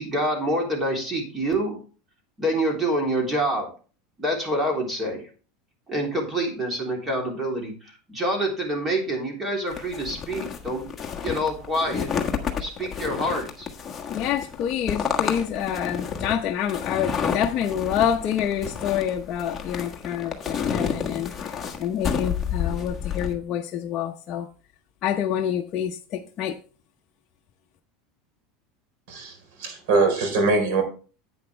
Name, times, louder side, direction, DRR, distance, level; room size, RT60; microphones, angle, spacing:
voice 1, 0.0-1.8 2.4-3.7 4.2-5.2 5.9-10.9 11.2-12.1 12.6-13.7, right 1 dB, 15° right, 1 dB, 3.4 m, -26 dB
sound 1, 9.7-23.3, left 7 dB, 20° left, 1.4 m, -30 dB
voice 2, 14.1-24.5 25.0-26.6, left 9 dB, 35° left, 2 dB, 0.8 m, -27 dB
voice 3, 29.1-30.8, right 3 dB, 65° right, 6 dB, 4.1 m, -22 dB
10.5 x 8.8 x 3.4 m, 0.38 s
supercardioid pair, 150°, 0 cm